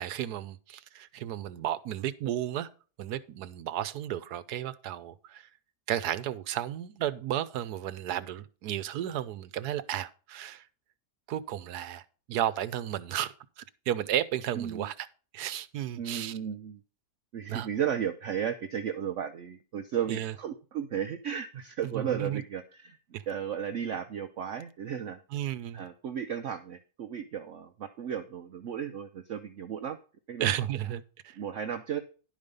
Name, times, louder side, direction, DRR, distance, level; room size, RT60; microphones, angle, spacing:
voice 1, 0.0-2.7 3.0-5.5 5.9-10.6 11.3-12.0 12.3-15.1 15.3-16.4 17.5-17.7 20.1-20.3 21.8-22.4 23.1-23.2 25.3-25.8 30.4-31.4, right 11 dB, 85° right, 1.3 m, -33 dB
voice 2, 14.6-14.9 16.0-16.8 17.3-23.0 23.3-25.2 25.7-30.0 30.3-30.5 31.4-32.0, right 8 dB, 60° right, 0.9 m, -34 dB
11.0 x 5.2 x 5.3 m
omnidirectional pair, 1.7 m